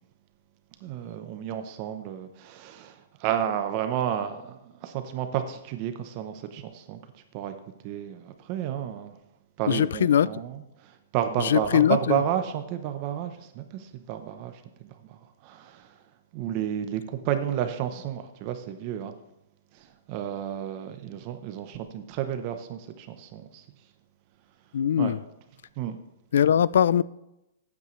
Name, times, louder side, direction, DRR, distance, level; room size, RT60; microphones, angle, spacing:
voice 1, 0.8-7.0 7.3-7.5 7.8-9.2 9.6-16.0 16.3-19.1 19.7-23.6 25.0-25.1 25.8-26.0, right 10 dB, 35° right, 0.7 m, -31 dB
voice 2, 9.7-10.4 11.4-12.2 24.7-25.2 26.3-27.0, left 9 dB, 75° left, 0.3 m, -21 dB
13.5 x 8.4 x 3.1 m
hypercardioid pair, 165°, 0 cm